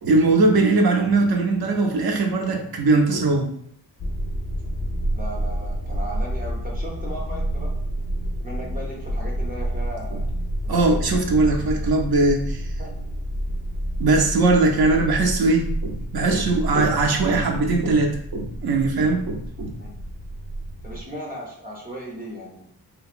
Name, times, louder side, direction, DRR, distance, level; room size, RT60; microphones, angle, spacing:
voice 1, 0.0-3.5 10.1-10.2 10.7-12.6 14.0-19.7, right 3 dB, 65° right, 2 dB, 0.5 m, -20 dB
sound 1, 4.0-21.0, right 1 dB, 50° left, 0.4 m, -29 dB
voice 2, 5.1-7.8 8.4-10.2 10.6-11.0 12.8-12.9 19.8-19.9 20.8-22.6, right 1 dB, 20° right, -2 dB, 0.6 m, -36 dB
2.8 x 2.2 x 2.4 m, 0.66 s
wide cardioid pair, 110°, 41 cm